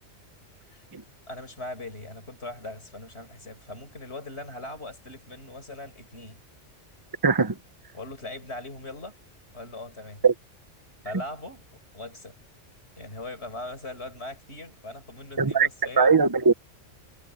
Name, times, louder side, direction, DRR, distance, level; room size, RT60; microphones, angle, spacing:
voice 1, 1.3-6.4 7.9-9.1 9.5-10.2 11.0-11.6 11.9-12.4 13.0-16.1, left 2 dB, 60° left, 5.5 m, -40 dB
voice 2, 7.2-7.5 10.2-10.3 15.4-15.7 16.0-16.5, right 5 dB, 25° right, 0.6 m, -19 dB
omnidirectional pair, 1.2 m